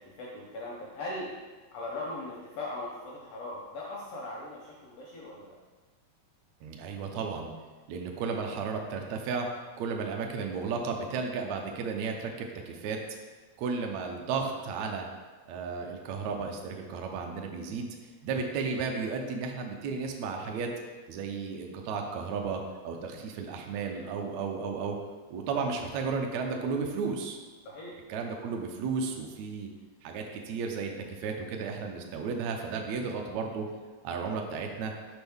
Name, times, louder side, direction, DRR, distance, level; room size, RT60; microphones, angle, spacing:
voice 1, 0.2-1.3 1.7-5.5 27.6-27.9, left 2 dB, 80° left, -4 dB, 1.4 m, -39 dB
voice 2, 6.6-7.5 7.9-9.5 9.8-13.0 13.6-15.1 15.5-18.0 18.2-20.7 21.1-25.0 25.3-27.4 28.1-29.7 30.0-30.9 31.2-33.7 34.0-34.9, right 5 dB, 85° right, 2 dB, 1.5 m, -33 dB
6.1 x 5.2 x 3.5 m, 1.3 s
omnidirectional pair, 3.9 m